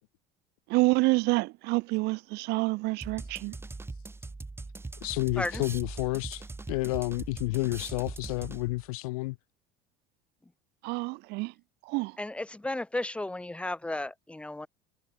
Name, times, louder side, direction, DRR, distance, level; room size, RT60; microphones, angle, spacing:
voice 1, 0.7-3.5 10.8-11.5 11.9-12.2, right 24 dB, 65° right, 1.1 m, -27 dB
sound 1, 3.0-8.9, right 3 dB, 15° right, 3.8 m, -41 dB
voice 2, 5.0-9.3, left 22 dB, 85° left, 1.5 m, -30 dB
voice 3, 12.2-14.7, left 2 dB, 5° left, 1.1 m, -34 dB
supercardioid pair, 105°, 18 cm